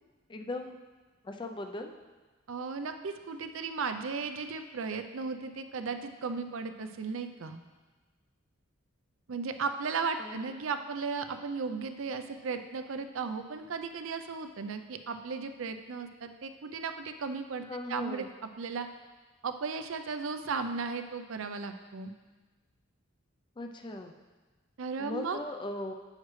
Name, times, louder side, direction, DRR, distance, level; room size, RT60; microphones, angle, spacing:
voice 1, 0.3-0.8 1.2-1.9 10.2-10.5 17.7-18.3 23.6-24.1 25.0-25.9, left 2 dB, 25° left, 5 dB, 0.4 m, -38 dB
voice 2, 2.5-7.6 9.3-17.6 17.9-18.3 18.6-18.9 19.4-22.1 24.8-25.4, right 4 dB, 70° right, 8 dB, 0.5 m, -35 dB
9.4 x 6.5 x 3.2 m, 1.3 s
head